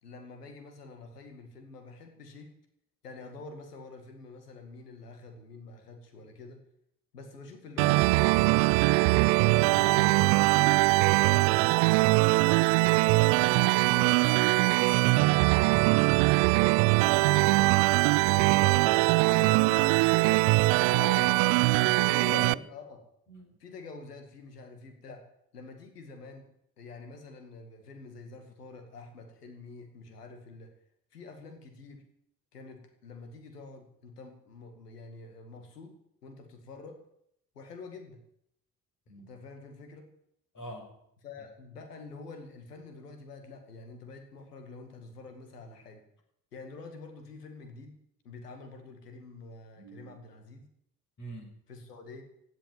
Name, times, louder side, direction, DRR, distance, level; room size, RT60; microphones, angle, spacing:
voice 1, 0.0-2.5 3.0-6.6 7.1-8.9 9.4-12.9 13.4-17.8 18.3-20.7 21.5-21.6 22.4-23.0 23.6-25.3 25.5-26.5 26.8-30.7 31.1-32.0 32.5-37.0 37.6-38.2 39.2-40.1 41.2-46.1 46.5-48.0 48.2-50.7 51.7-52.2, left 3 dB, 85° left, 6 dB, 2.1 m, -47 dB
sound 1, 7.8-22.5, right 24 dB, 65° right, 0.5 m, -22 dB
voice 2, 20.9-22.6 23.3-23.6 39.1-39.3 40.5-40.9 49.8-50.2 51.2-51.5, left 1 dB, 40° left, 2 dB, 6.8 m, -42 dB
16.5 x 9.0 x 9.0 m, 0.74 s
figure-of-eight pair, 45°, 46 cm